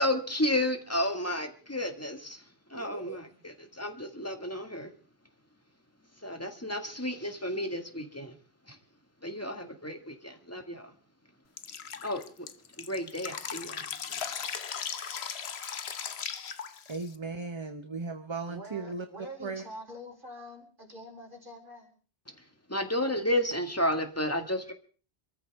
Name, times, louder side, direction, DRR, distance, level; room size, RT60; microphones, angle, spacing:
voice 1, 0.0-2.4 2.7-4.9 6.2-8.3 8.7-8.8 9.2-10.9 12.0-12.5 12.8-13.8 14.1-14.2 22.7-24.7, left 1 dB, 15° left, 5 dB, 1.9 m, -32 dB
voice 2, 2.7-3.2 16.9-19.6, right 4 dB, 30° right, 7 dB, 0.9 m, -37 dB
Drip, 11.6-17.2, left 7 dB, 90° left, 1.2 m, -38 dB
voice 3, 18.5-21.9, equal, 55° right, 0 dB, 4.1 m, -45 dB
27.0 x 14.0 x 3.5 m, 0.39 s
omnidirectional pair, 1.0 m